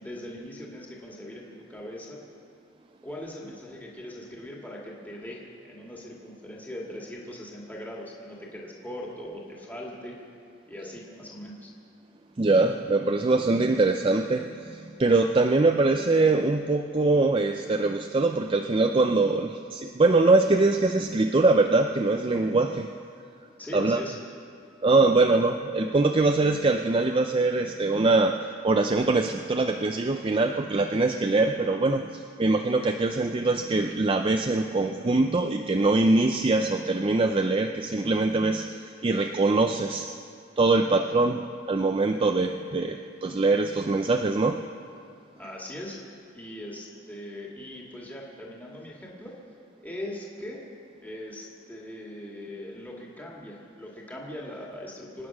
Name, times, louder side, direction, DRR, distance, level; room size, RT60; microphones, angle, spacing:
voice 1, 0.0-2.2 3.0-10.2 10.7-11.7 23.6-24.2 45.4-46.0 46.3-49.4 49.8-50.6 51.0-55.3, left 1 dB, 10° left, -3 dB, 2.0 m, -40 dB
voice 2, 12.4-22.9 23.7-24.0 24.8-40.1 40.6-44.7, right 3 dB, 25° right, 5 dB, 0.5 m, -23 dB
25.0 x 9.4 x 6.1 m, 2.4 s
head